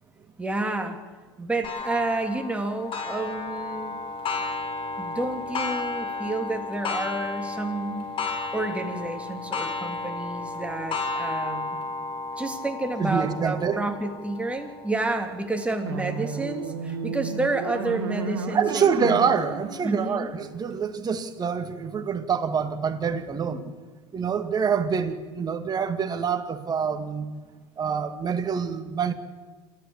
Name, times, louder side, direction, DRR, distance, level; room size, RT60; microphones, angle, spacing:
voice 1, 0.4-1.0 1.4-4.0 5.0-8.1 8.5-11.8 12.4-18.9 19.8-20.3, right 2 dB, 10° right, 4 dB, 3.1 m, -30 dB
Clock, 1.6-16.9 17.5-17.6 18.2-18.3 19.2-19.3, left 3 dB, 40° left, 4.5 m, -33 dB
voice 2, 13.0-13.9 18.5-23.7 24.1-27.3 27.8-29.1, right 6 dB, 30° right, 8 dB, 2.2 m, -26 dB
sound 1, 15.8-21.0, right 5 dB, 80° right, 1.9 m, -33 dB
27.5 x 13.5 x 7.3 m, 1.4 s
hypercardioid pair, 95°, 14 cm